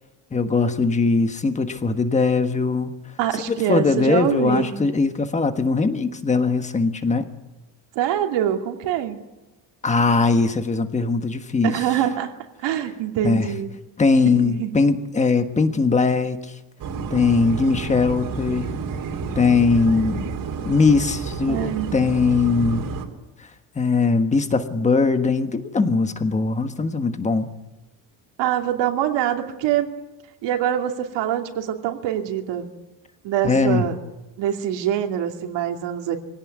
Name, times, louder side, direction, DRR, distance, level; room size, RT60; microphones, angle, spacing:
voice 1, 0.3-3.0 3.5-7.3 9.8-11.7 13.2-13.5 14.0-16.5 17.1-18.7 19.3-20.3 20.6-22.9 23.7-27.5 33.4-33.8, left 4 dB, 15° left, 8 dB, 1.4 m, -20 dB
voice 2, 3.2-4.7 7.9-9.2 11.6-12.3 12.6-13.7 14.2-14.7 21.5-22.2 28.4-29.9 30.4-32.7 33.2-33.9 34.4-36.2, right 11 dB, 70° right, 4 dB, 2.7 m, -24 dB
sound 1, 16.8-23.1, right 5 dB, 45° right, 3.3 m, -30 dB
23.5 x 17.5 x 9.5 m, 1.0 s
cardioid pair, 170°, 45 cm